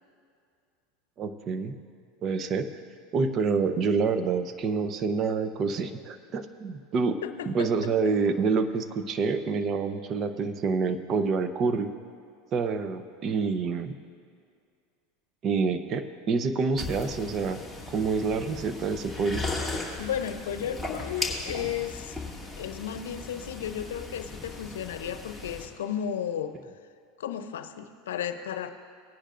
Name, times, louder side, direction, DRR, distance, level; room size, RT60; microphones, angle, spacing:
voice 1, 1.2-1.7 2.2-2.8 3.1-11.9 12.5-13.9 15.4-17.6 17.9-19.4, right 4 dB, 40° right, 10 dB, 0.8 m, -27 dB
voice 2, 7.2-7.7 20.0-22.2 22.6-26.5 27.2-28.7, left 9 dB, 85° left, 10 dB, 0.6 m, -34 dB
sound 1, 16.8-25.7, left 3 dB, 5° right, 2.1 m, -37 dB
18.5 x 10.0 x 2.6 m, 2.3 s
hypercardioid pair, 100°, 0 cm